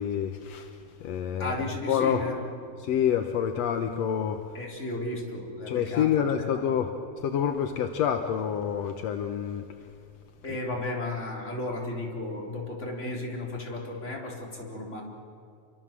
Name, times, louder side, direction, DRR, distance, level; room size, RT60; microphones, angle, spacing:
voice 1, 0.0-1.5 1.9-2.3 2.8-4.4 5.7-6.9 7.2-9.6, left 8 dB, 70° left, 6 dB, 1.6 m, -27 dB
voice 2, 1.4-2.5 4.5-6.6 10.4-15.0, left 2 dB, 20° left, -2 dB, 4.1 m, -34 dB
28.5 x 24.0 x 7.6 m, 2.4 s
omnidirectional pair, 4.1 m